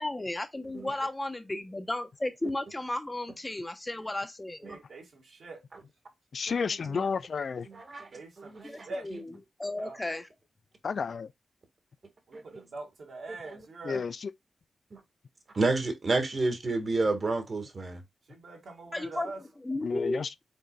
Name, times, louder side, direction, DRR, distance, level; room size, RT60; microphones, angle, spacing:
voice 1, 0.0-4.8 8.6-9.3 9.6-10.3 18.9-20.2, left 2 dB, 20° left, 1.0 m, -34 dB
voice 2, 4.6-5.6 8.1-9.1 9.8-10.0 12.3-14.1 18.3-19.4, right 2 dB, 70° right, 2.3 m, -43 dB
voice 3, 6.3-7.7 10.8-11.3 13.8-14.3 19.8-20.3, left 5 dB, 65° left, 0.3 m, -31 dB
voice 4, 7.7-8.1 8.4-8.9 12.3-12.6 13.5-13.6 14.9-15.0 15.5-18.0, right 3 dB, 50° right, 1.7 m, -30 dB
5.4 x 3.9 x 2.3 m
cardioid pair, 50°, 0 cm